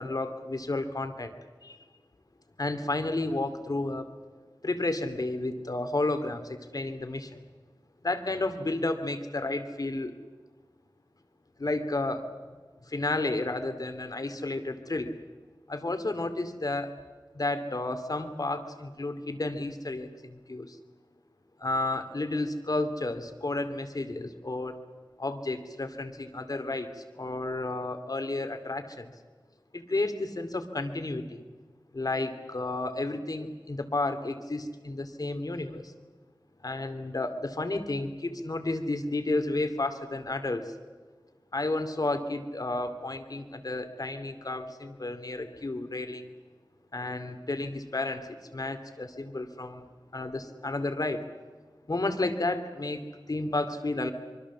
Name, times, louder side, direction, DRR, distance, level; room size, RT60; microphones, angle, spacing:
voice 1, 0.0-1.3 1.6-1.8 2.6-4.1 4.6-7.4 8.0-10.1 11.6-12.3 12.9-15.1 15.7-16.9 17.3-20.8 21.6-24.8 25.2-29.1 29.7-31.4 31.9-35.9 36.6-40.7 41.5-46.3 46.9-49.8 50.1-51.3 51.9-54.1, left 2 dB, 55° left, 8 dB, 2.6 m, -32 dB
25.0 x 24.0 x 7.4 m, 1.4 s
wide cardioid pair, 70°, 8 cm